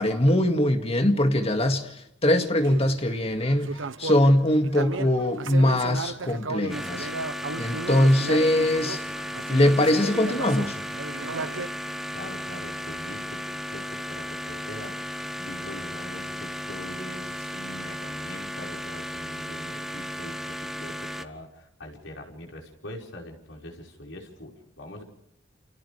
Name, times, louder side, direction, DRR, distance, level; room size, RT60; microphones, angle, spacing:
voice 1, 0.0-1.9 2.2-7.1 7.6-9.0 9.5-10.8, left 1 dB, 30° left, 2.1 m, -22 dB
sound 1, 2.6-11.7, right 3 dB, 85° right, 1.0 m, -35 dB
sound 2, 6.7-21.2, equal, ahead, 1.1 m, -35 dB
voice 2, 12.1-25.0, left 1 dB, 80° left, 5.3 m, -43 dB
29.5 x 29.0 x 3.4 m
head